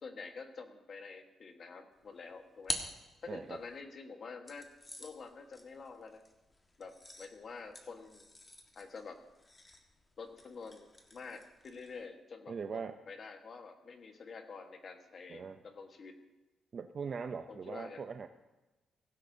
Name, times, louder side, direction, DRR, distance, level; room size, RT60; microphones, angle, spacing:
voice 1, 0.0-2.8 3.2-4.7 5.0-6.2 6.8-8.2 8.7-9.2 10.2-16.2 17.5-18.1, left 4 dB, 40° left, 5 dB, 1.4 m, -48 dB
sound 1, 2.0-3.8 4.5-12.1, left 1 dB, 20° left, 1.5 m, -47 dB
voice 2, 3.3-3.6 12.5-13.0 15.3-15.6 16.7-18.3, right 5 dB, 40° right, 7 dB, 0.5 m, -41 dB
16.5 x 16.5 x 2.8 m, 1.1 s
cardioid pair, 150°, 0 cm